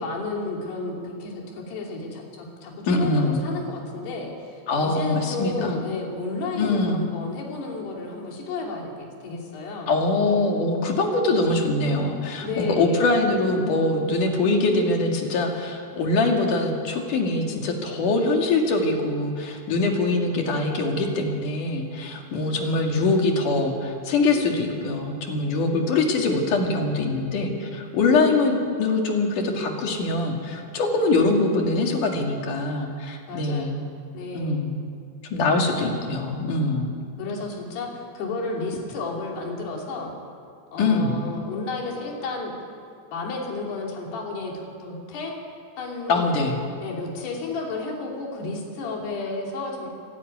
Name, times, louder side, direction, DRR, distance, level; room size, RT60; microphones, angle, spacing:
voice 1, 0.0-9.9 12.4-13.1 33.3-33.7 34.1-34.6 37.2-40.1 40.7-42.5 43.1-45.4 45.8-46.3 46.8-49.9, left 3 dB, 70° left, -1 dB, 4.9 m, -32 dB
voice 2, 2.9-3.4 4.7-5.8 6.6-7.0 9.9-33.8 34.3-34.8 35.3-36.9 40.8-41.2 46.1-46.6, left 2 dB, 55° left, 1 dB, 3.5 m, -23 dB
25.0 x 12.5 x 9.6 m, 2.3 s
omnidirectional pair, 5.0 m